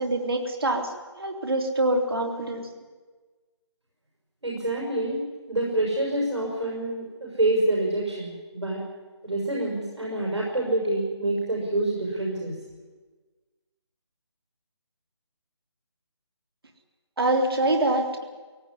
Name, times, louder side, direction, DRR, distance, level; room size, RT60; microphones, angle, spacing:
voice 1, 0.0-2.7 17.2-18.2, right 2 dB, 55° right, 3 dB, 3.3 m, -25 dB
voice 2, 4.4-5.2 5.5-8.8 9.2-12.5, right 1 dB, 75° right, -2 dB, 6.4 m, -27 dB
18.0 x 17.5 x 9.8 m, 1.3 s
figure-of-eight pair, 155°, 15 cm